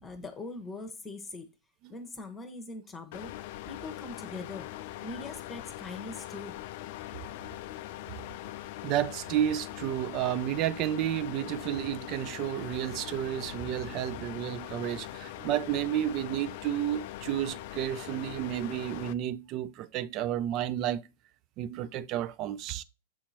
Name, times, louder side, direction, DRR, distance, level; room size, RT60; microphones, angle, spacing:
voice 1, 0.0-1.5 1.9-3.3 3.7-4.7 5.0-6.6, left 3 dB, 20° left, 1.1 m, -41 dB
sound 1, 3.1-19.1, left 15 dB, 55° left, 0.3 m, -42 dB
voice 2, 8.8-21.1 21.6-22.8, right 11 dB, 40° right, 0.5 m, -31 dB
7.6 x 2.9 x 4.2 m
figure-of-eight pair, 100°, 0 cm